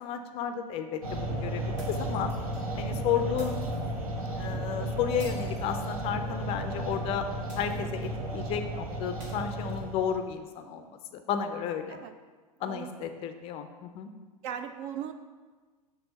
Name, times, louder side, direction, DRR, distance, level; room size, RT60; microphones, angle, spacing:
voice 1, 0.0-2.3 2.7-3.5 4.4-7.3 7.6-10.8 11.1-12.0 12.6-14.1, left 8 dB, 30° left, 8 dB, 0.4 m, -32 dB
sound 1, 1.0-10.2, right 1 dB, 65° right, 1.0 m, -34 dB
sound 2, 1.8-2.6 3.4-4.0 5.2-6.4 7.5-8.2 9.2-10.2, right 2 dB, 50° right, 1.5 m, -52 dB
voice 2, 12.6-13.1 14.4-15.1, right 9 dB, 35° right, 9 dB, 0.4 m, -39 dB
6.0 x 3.3 x 5.3 m, 1.4 s
figure-of-eight pair, 90°, 19 cm